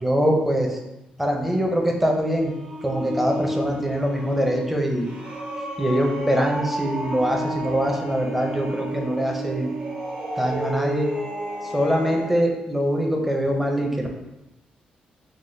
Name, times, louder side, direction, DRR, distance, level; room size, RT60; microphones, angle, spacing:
voice 1, 0.0-0.8 1.2-2.5 2.8-5.1 5.8-9.7 10.4-11.1 11.7-14.2, equal, 5° right, 1 dB, 0.5 m, -23 dB
sound 1, 1.9-12.4, right 1 dB, 60° right, 1.2 m, -32 dB
6.2 x 2.1 x 3.2 m, 0.97 s
cardioid pair, 160°, 3 cm